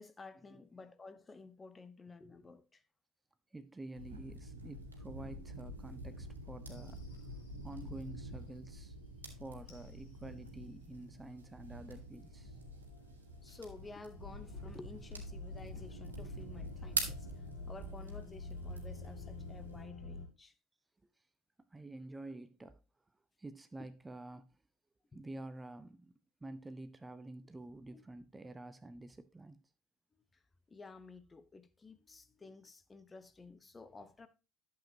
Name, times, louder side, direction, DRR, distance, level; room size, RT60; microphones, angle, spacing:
voice 1, 0.0-2.8 13.4-17.3 17.7-20.5 27.9-28.0 30.7-34.3, left 3 dB, 20° left, 0.9 m, -53 dB
voice 2, 3.5-7.0 7.6-9.0 9.4-12.5 21.7-22.8 23.4-24.4 25.1-26.1 26.4-29.6, right 2 dB, 15° right, 0.7 m, -49 dB
sound 1, 3.9-19.8, right 2 dB, 80° right, 1.5 m, -46 dB
sound 2, 6.7-7.8 9.7-20.3, left 2 dB, 65° left, 2.4 m, -50 dB
11.5 x 7.4 x 2.8 m
figure-of-eight pair, 65°, 0 cm